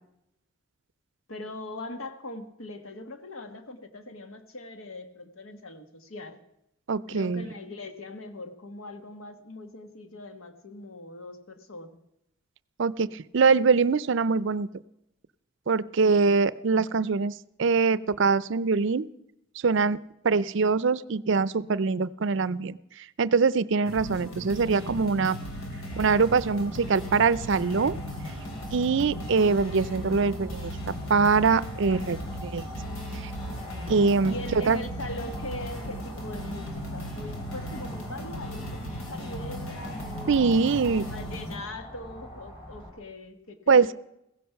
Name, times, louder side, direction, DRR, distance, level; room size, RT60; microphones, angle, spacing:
voice 1, 1.3-6.4 7.1-11.9 31.9-32.1 34.2-40.7 41.1-43.9, left 2 dB, 75° left, 8 dB, 1.4 m, -41 dB
voice 2, 6.9-7.5 12.8-14.7 15.7-17.3 17.6-19.1 19.6-20.0 20.2-22.8 23.2-25.4 26.0-28.0 28.7-32.7 33.2-33.3 33.9-34.3 34.7-34.8 40.3-41.1 43.7-43.9, right 4 dB, 60° right, 18 dB, 0.5 m, -23 dB
sound 1, 23.8-41.5, equal, 90° left, 3.6 m, -37 dB
sound 2, 25.9-42.9, equal, 25° left, 5.8 m, -42 dB
16.0 x 15.5 x 5.8 m, 0.82 s
head